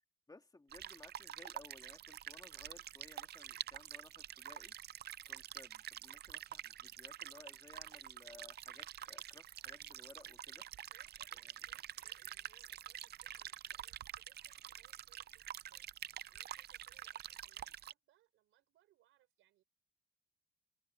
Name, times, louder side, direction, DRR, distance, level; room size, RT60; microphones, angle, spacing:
voice 1, 0.3-4.7 5.3-10.7 11.3-11.5, left 2 dB, 20° left, 2.5 m, -60 dB
sound 1, 0.7-17.9, right 11 dB, 55° right, 0.5 m, -48 dB
voice 2, 10.9-19.6, right 14 dB, 90° right, 5.0 m, -74 dB
cardioid pair, 90°, 20 cm